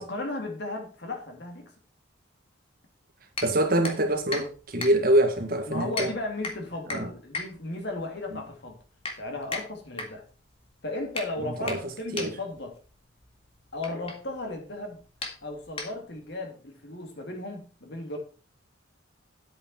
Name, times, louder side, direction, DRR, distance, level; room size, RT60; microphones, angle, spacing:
voice 1, 0.0-1.7 5.7-8.8 9.2-10.2 10.8-12.8 13.7-15.0 15.4-18.2, left 2 dB, 55° left, 3.0 m, -35 dB
sound 1, 3.3-16.3, left 3 dB, 30° left, 2.0 m, -39 dB
voice 2, 3.4-6.1 6.9-7.1 11.6-11.8 12.1-12.3, right 1 dB, 45° right, 1.8 m, -24 dB
9.9 x 8.5 x 4.5 m
head